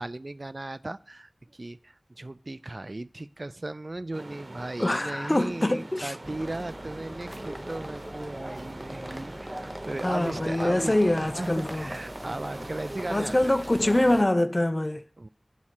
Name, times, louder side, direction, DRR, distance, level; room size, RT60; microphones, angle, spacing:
voice 1, 0.0-13.6 15.2-15.3, right 2 dB, 65° right, 0.3 m, -37 dB
sound 1, 4.1-14.2, right 2 dB, 85° right, 1.0 m, -45 dB
voice 2, 4.8-6.2 10.0-11.9 13.1-15.0, left 1 dB, 40° left, 0.5 m, -24 dB
sound 2, 6.2-14.2, right 1 dB, 20° right, 0.8 m, -39 dB
7.2 x 4.3 x 6.4 m
wide cardioid pair, 40°, 0 cm